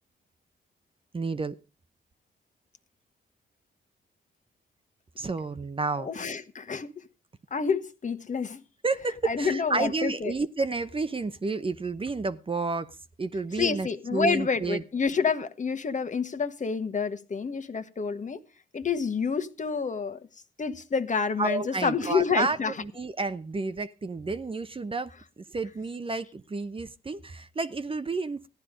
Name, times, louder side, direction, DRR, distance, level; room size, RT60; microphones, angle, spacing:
voice 1, 1.1-1.6 5.2-6.1 8.8-12.9 13.2-14.8 21.4-25.1 25.5-28.5, right 3 dB, 30° right, 0.9 m, -30 dB
voice 2, 6.0-6.9 7.5-8.6 9.2-10.3 13.6-18.4 18.7-20.2 20.6-22.7, left 5 dB, 40° left, 1.4 m, -28 dB
14.5 x 10.5 x 5.1 m
supercardioid pair, 65°, 19 cm